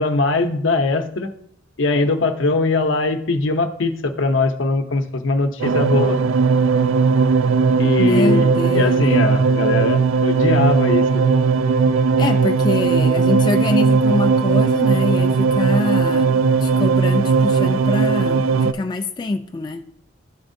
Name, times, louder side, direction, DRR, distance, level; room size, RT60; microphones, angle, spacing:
voice 1, 0.0-1.3 1.8-6.2 7.8-8.5 8.7-11.0, left 3 dB, 70° left, 7 dB, 0.7 m, -20 dB
sound 1, 5.6-18.7, right 4 dB, 90° right, 0.3 m, -17 dB
voice 2, 8.0-9.0 12.2-16.3 16.6-19.8, left 2 dB, 20° left, 4 dB, 0.3 m, -24 dB
12.0 x 4.2 x 2.6 m, 0.67 s
head